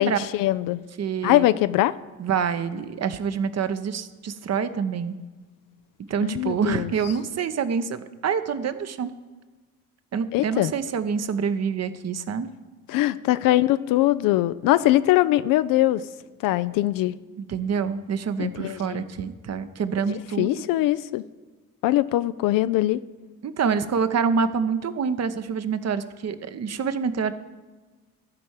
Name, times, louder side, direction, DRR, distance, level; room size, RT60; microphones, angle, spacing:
voice 1, 0.0-0.8 1.2-1.9 6.2-6.9 10.3-10.7 12.9-16.0 16.4-17.2 18.4-19.0 20.4-21.2 21.8-23.0, left 15 dB, 50° left, 15 dB, 0.5 m, -22 dB
voice 2, 1.0-1.5 2.2-5.1 6.1-9.1 10.1-12.5 17.4-20.6 23.4-27.3, right 6 dB, 35° right, 11 dB, 0.9 m, -26 dB
14.5 x 5.3 x 7.3 m, 1.3 s
figure-of-eight pair, 50°, 43 cm